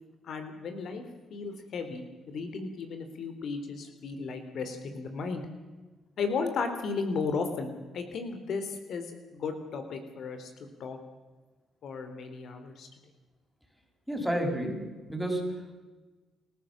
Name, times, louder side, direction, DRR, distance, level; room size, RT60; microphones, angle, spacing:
voice 1, 0.2-1.0 1.3-5.4 6.2-10.5 10.8-11.0 11.8-12.9, left 4 dB, 65° left, 7 dB, 3.4 m, -35 dB
voice 2, 14.1-15.8, right 1 dB, ahead, 3 dB, 6.1 m, -31 dB
29.0 x 14.5 x 7.4 m, 1.3 s
cardioid pair, 90°, 0 cm